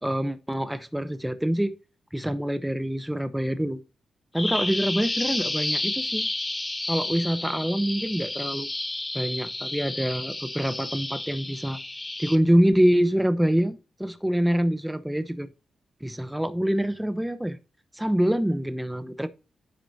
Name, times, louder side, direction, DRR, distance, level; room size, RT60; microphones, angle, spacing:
voice 1, 0.0-1.7 2.1-3.8 4.3-6.3 6.9-8.7 9.1-11.8 12.2-15.5 16.0-17.6 17.9-19.3, equal, 5° right, 0.8 m, -25 dB
Bird vocalization bird call bird song, 4.4-12.4, left 2 dB, 20° left, 1.0 m, -31 dB
10.0 x 6.0 x 2.7 m
cardioid pair, 70°, 0 cm